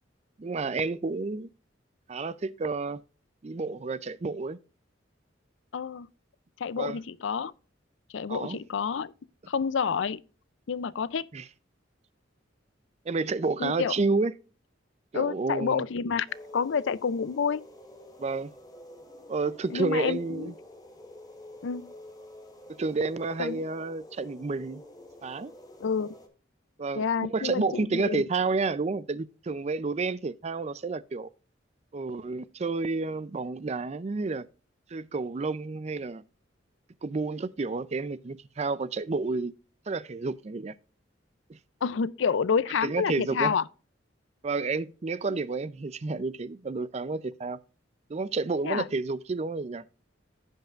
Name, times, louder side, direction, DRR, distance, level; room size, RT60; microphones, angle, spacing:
voice 1, 0.4-1.5 2.1-3.0 3.4-4.6 6.8-7.0 8.3-8.6 11.3-11.4 13.1-14.3 15.1-15.8 18.2-18.5 19.3-20.5 22.7-24.8 25.2-25.5 26.8-31.3 31.9-34.5 34.9-36.2 37.0-39.5 39.9-40.7 41.5-41.6 42.8-43.5 44.4-47.6 48.1-49.8, right 3 dB, 35° right, 0.4 m, -30 dB
voice 2, 5.7-6.1 6.6-7.5 8.1-9.1 9.5-10.2 10.7-11.3 13.6-13.9 15.1-16.3 16.5-17.6 19.7-20.5 21.6-21.9 23.4-23.6 25.8-26.1 27.0-28.2 41.8-43.6 48.6-48.8, left 6 dB, 80° left, 0.5 m, -29 dB
sound 1, 16.3-26.3, left 1 dB, 20° left, 1.3 m, -49 dB
15.0 x 5.4 x 2.4 m
head